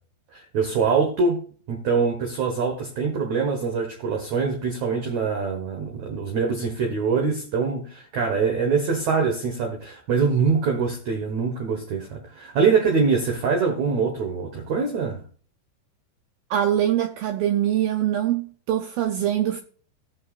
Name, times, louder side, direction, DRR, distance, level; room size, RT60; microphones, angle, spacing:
voice 1, 0.3-1.4 1.7-15.2, right 5 dB, 65° right, 1.8 m, -24 dB
voice 2, 16.5-19.6, right 11 dB, 85° right, 2.0 m, -23 dB
19.5 x 6.5 x 2.5 m
omnidirectional pair, 5.1 m